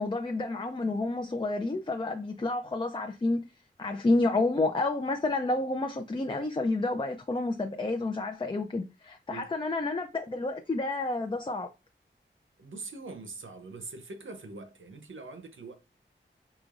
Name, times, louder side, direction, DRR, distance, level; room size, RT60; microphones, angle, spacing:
voice 1, 0.0-3.5 3.8-11.7, left 2 dB, 25° left, 0.4 m, -30 dB
voice 2, 12.6-15.7, right 3 dB, 75° right, 0.8 m, -43 dB
4.9 x 3.0 x 2.4 m
wide cardioid pair, 50°, 20 cm